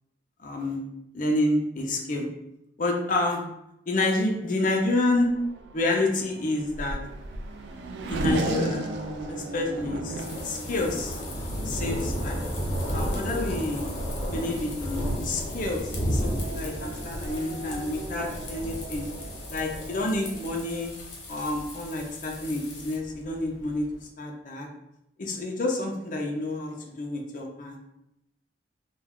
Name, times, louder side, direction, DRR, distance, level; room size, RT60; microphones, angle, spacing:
voice 1, 0.4-0.8 1.1-2.3 2.8-3.5 3.9-5.3 5.7-7.0 8.0-8.8 9.3-11.2 11.6-12.4 12.9-13.9 14.3-19.1 19.5-20.9 21.3-23.9 24.2-24.7 25.2-27.8, left 2 dB, 45° left, 1 dB, 0.4 m, -28 dB
Race car auto racing / Accelerating revving vroom, 4.8-20.9, right 2 dB, 70° right, 0.3 m, -37 dB
Thunder, 7.0-23.9, equal, 25° left, 0.9 m, -34 dB
sound 1, 10.2-23.0, left 3 dB, 90° left, 0.7 m, -43 dB
2.2 x 2.2 x 3.5 m, 0.84 s
head